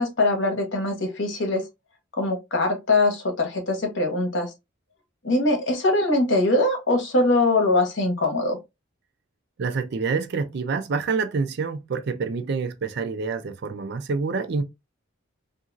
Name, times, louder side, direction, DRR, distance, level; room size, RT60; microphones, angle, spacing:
voice 1, 0.0-1.6 2.2-4.5 5.2-8.6, left 2 dB, 65° left, 1.0 m, -22 dB
voice 2, 9.6-14.6, right 4 dB, 55° right, 0.4 m, -27 dB
2.8 x 2.6 x 2.5 m
head